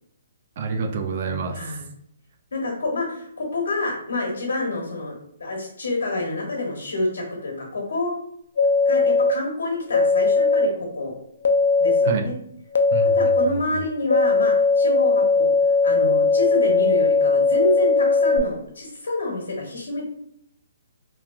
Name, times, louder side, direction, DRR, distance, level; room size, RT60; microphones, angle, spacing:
voice 1, 0.6-1.6 12.1-12.3 12.9-13.3, right 4 dB, 45° right, 7 dB, 0.4 m, -27 dB
voice 2, 1.5-1.9 2.5-5.1 5.4-8.1 8.8-11.2 11.8-12.4 13.1-15.5 15.8-20.1, left 2 dB, 85° left, -1 dB, 1.2 m, -28 dB
sound 1, 8.6-9.3 9.9-10.7 11.4-12.1 12.7-13.4 14.1-18.4, left 4 dB, 70° left, 0.4 m, -18 dB
3.0 x 2.3 x 2.4 m, 0.71 s
hypercardioid pair, 155°, 0 cm